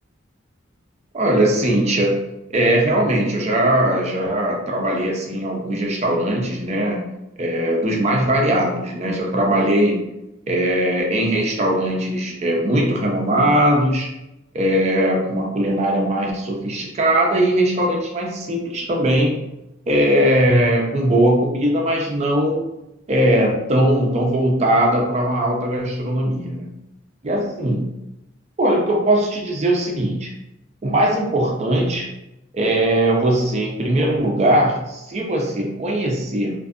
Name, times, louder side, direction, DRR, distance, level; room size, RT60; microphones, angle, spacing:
voice 1, 1.1-2.2 2.5-7.0 7.4-10.0 10.5-14.1 14.5-19.4 19.9-22.6 23.1-26.7 27.2-27.9 28.6-30.3 30.8-32.1 32.5-36.5, right 1 dB, 35° right, -1 dB, 0.5 m, -20 dB
2.5 x 2.4 x 2.4 m, 0.90 s
head